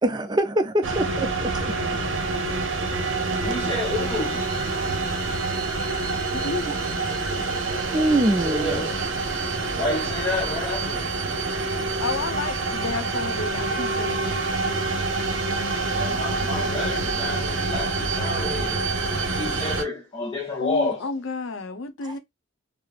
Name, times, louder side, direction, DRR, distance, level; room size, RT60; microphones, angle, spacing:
voice 1, 0.0-1.5 7.9-8.9 15.9-16.1 22.1-22.2, right 1 dB, 20° right, 0.4 m, -23 dB
sound 1, 0.8-19.8, right 3 dB, 70° right, 0.7 m, -26 dB
voice 2, 3.4-4.5 7.9-9.0 9.6-11.1 11.5-11.8 15.7-21.0, left 2 dB, 20° left, 0.7 m, -30 dB
voice 3, 6.3-6.7 12.0-14.5 20.6-22.2, left 3 dB, 75° left, 0.6 m, -31 dB
3.1 x 2.0 x 2.3 m
head